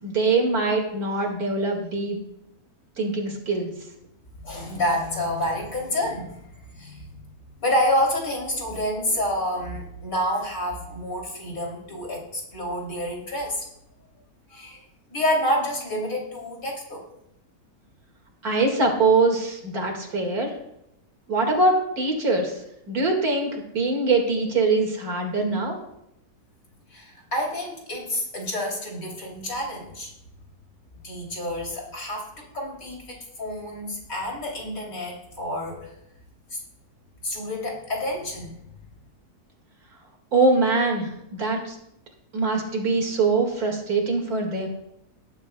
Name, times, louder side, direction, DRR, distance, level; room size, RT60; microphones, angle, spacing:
voice 1, 0.0-2.2 3.0-3.7 18.4-20.5 21.3-22.5 22.9-25.8 40.3-41.8 42.3-44.7, right 3 dB, 70° right, 1 dB, 2.6 m, -23 dB
voice 2, 4.4-7.2 7.6-13.7 14.5-14.8 15.1-17.0 26.9-30.1 31.0-35.9 36.5-36.6 37.2-38.6, left 1 dB, 60° left, -2 dB, 3.6 m, -28 dB
19.0 x 10.5 x 2.3 m, 0.80 s
omnidirectional pair, 1.6 m